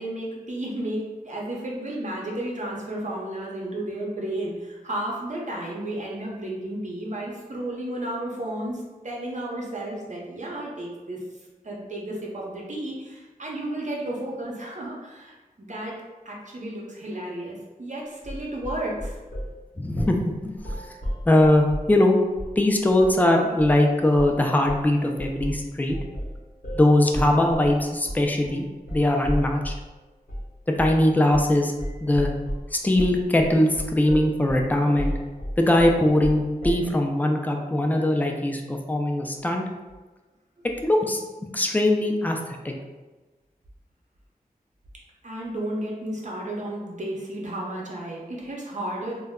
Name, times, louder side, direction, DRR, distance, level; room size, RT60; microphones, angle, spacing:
voice 1, 0.0-11.2 11.6-15.9 16.2-19.2 45.2-49.2, right 1 dB, 50° right, -3 dB, 0.7 m, -33 dB
sound 1, 18.2-19.5 20.0-20.2 20.6-21.9 22.4-22.6 23.0-23.2 23.6-23.8 24.1-24.4 24.7-29.9 30.3-30.5 30.8-31.0 31.3-31.5 31.8-36.9, equal, 65° left, 1.0 m, -33 dB
voice 2, 19.8-20.6 21.3-22.2 22.6-26.0 26.7-28.7 28.9-29.7 30.7-31.7 32.0-32.3 32.7-35.1 35.6-39.6 40.6-42.7, left 1 dB, 10° left, 2 dB, 0.3 m, -21 dB
2.2 x 2.1 x 3.5 m, 1.2 s
wide cardioid pair, 65°, 16 cm